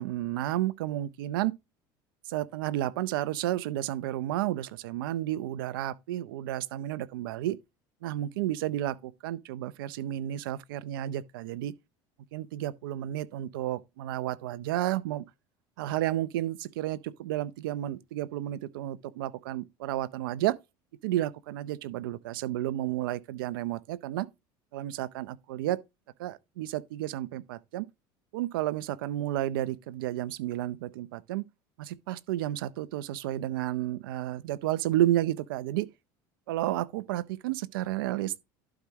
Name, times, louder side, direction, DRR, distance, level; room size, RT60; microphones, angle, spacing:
voice 1, 0.0-1.5 2.3-7.6 8.0-11.7 12.3-15.2 15.8-20.6 21.0-24.3 24.7-25.8 26.2-27.9 28.3-31.5 31.8-35.9 36.5-38.4, right 14 dB, 90° right, 0.6 m, -31 dB
11.5 x 4.9 x 3.0 m
supercardioid pair, 100°, 11 cm